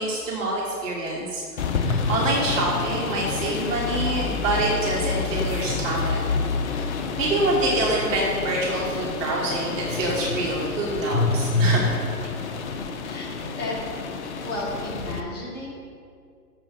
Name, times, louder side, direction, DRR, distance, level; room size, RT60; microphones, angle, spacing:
voice 1, 0.0-1.4 1.8-6.2 6.7-11.9, right 2 dB, 50° right, -4 dB, 1.8 m, -26 dB
sound 1, 1.6-15.2, left 5 dB, 45° left, 0.7 m, -29 dB
sound 2, 1.8-3.4 5.7-9.5 9.8-12.7, left 2 dB, 85° left, 1.0 m, -29 dB
voice 2, 13.0-13.8 14.4-15.7, left 2 dB, 20° left, -6 dB, 2.0 m, -33 dB
7.1 x 5.4 x 7.4 m, 2.2 s
figure-of-eight pair, 120°, 50 cm